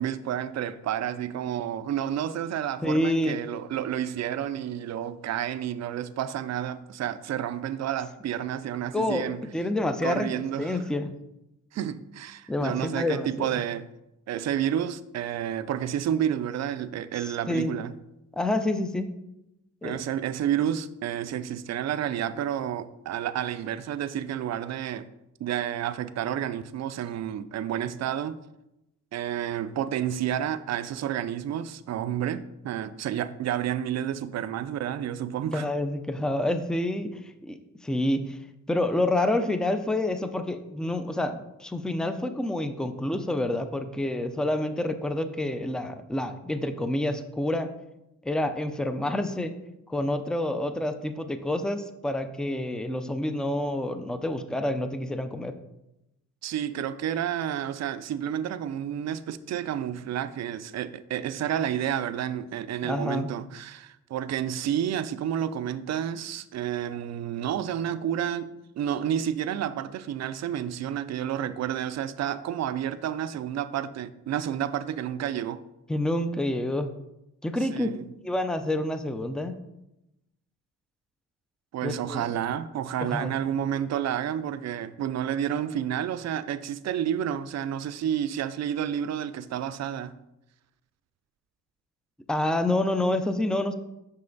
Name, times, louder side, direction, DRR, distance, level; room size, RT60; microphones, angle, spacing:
voice 1, 0.0-9.5 10.0-10.8 11.7-13.9 14.3-17.9 19.8-25.1 25.4-28.4 29.1-35.7 56.4-75.6 77.7-78.1 81.7-90.2, right 10 dB, 55° right, 0.4 m, -30 dB
voice 2, 2.8-3.4 8.9-9.3 9.5-10.3 10.6-11.1 12.5-13.5 17.5-17.7 18.3-19.1 19.8-20.0 35.5-37.6 37.8-38.4 38.7-47.7 48.2-49.5 49.9-55.5 62.8-63.3 75.9-76.9 77.4-79.5 81.8-82.3 83.0-83.3 92.3-93.7, left 1 dB, ahead, 0.4 m, -28 dB
6.1 x 5.5 x 3.9 m
cardioid pair, 120°, 32 cm